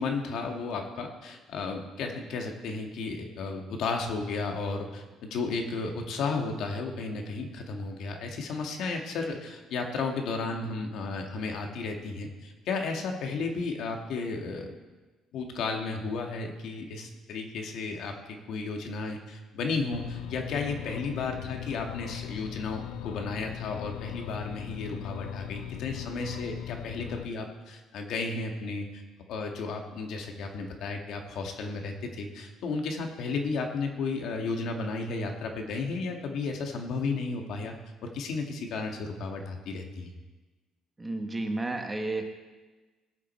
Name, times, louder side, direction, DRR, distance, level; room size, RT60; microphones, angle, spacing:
voice 1, 0.0-14.8 15.3-29.0 29.3-37.7 38.0-40.1, left 4 dB, 60° left, 3 dB, 1.6 m, -33 dB
sound 1, 19.9-27.3, left 13 dB, 85° left, 0.3 m, -39 dB
voice 2, 41.0-42.2, right 2 dB, 15° right, 5 dB, 1.0 m, -31 dB
18.5 x 7.4 x 4.3 m, 1.2 s
cardioid pair, 150°, 0 cm